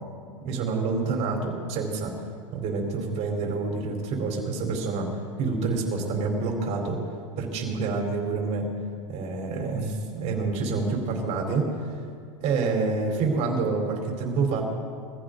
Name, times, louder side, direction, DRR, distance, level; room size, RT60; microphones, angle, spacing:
voice 1, 0.4-2.1 2.5-5.1 5.4-7.0 7.4-8.7 9.1-11.7 12.4-14.6, right 4 dB, 40° right, 1 dB, 4.3 m, -27 dB
23.5 x 15.5 x 4.0 m, 2.3 s
hypercardioid pair, 120°, 17 cm